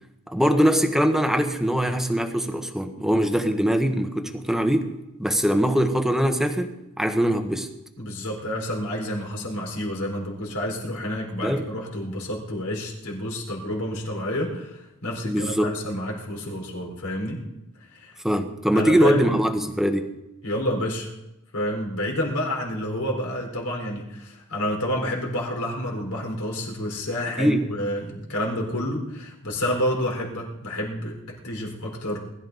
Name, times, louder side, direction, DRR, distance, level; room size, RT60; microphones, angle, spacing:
voice 1, 0.3-4.9 5.2-7.7 11.4-11.7 15.2-15.8 18.2-20.1 27.4-27.7, equal, ahead, 6 dB, 1.1 m, -22 dB
voice 2, 8.0-17.4 17.8-18.2 18.7-19.3 20.4-21.1 21.5-32.2, equal, 70° left, -1 dB, 4.2 m, -29 dB
21.0 x 12.5 x 4.0 m, 0.92 s
head